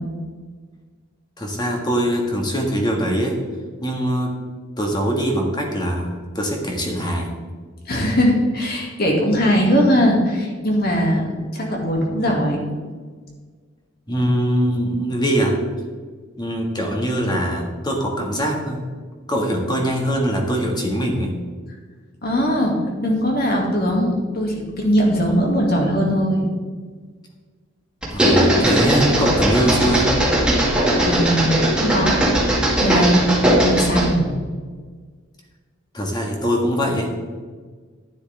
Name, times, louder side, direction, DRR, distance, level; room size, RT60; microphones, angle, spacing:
voice 1, 1.4-3.4 3.8-4.3 4.8-7.3 14.1-15.6 16.4-18.8 19.3-21.3 28.1-30.1 35.9-37.1, equal, 20° left, 1 dB, 1.7 m, -22 dB
voice 2, 7.9-12.6 22.2-22.7 23.0-26.5 31.0-32.2 32.8-33.3 33.6-34.3, equal, 50° left, 0 dB, 2.1 m, -20 dB
sound 1, 28.0-34.2, right 1 dB, 5° right, 1.9 m, -18 dB
11.0 x 10.0 x 3.4 m, 1.5 s
head